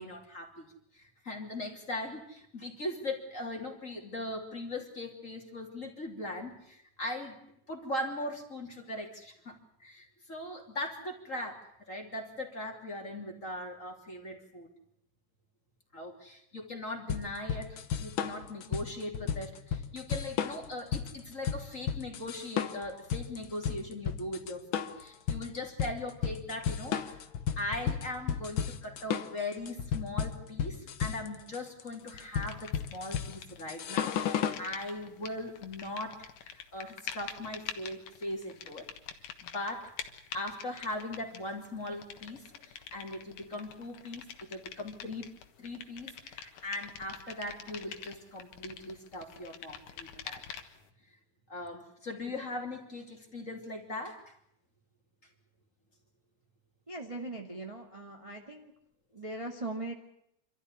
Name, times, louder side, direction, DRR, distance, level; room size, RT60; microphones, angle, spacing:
voice 1, 0.0-7.4 7.7-14.7 15.9-27.2 27.6-38.9 39.4-39.9 40.3-45.3 45.6-50.4 51.5-54.3, left 1 dB, 25° left, 2 dB, 3.2 m, -40 dB
sound 1, 17.1-34.6, left 8 dB, 60° left, 1.3 m, -34 dB
sound 2, 32.2-33.6 33.8-50.9, left 8 dB, 80° left, 3.0 m, -46 dB
voice 2, 56.9-58.7 59.1-59.9, right 2 dB, 10° right, 1 dB, 1.7 m, -40 dB
27.0 x 13.5 x 9.9 m, 0.74 s
omnidirectional pair, 3.7 m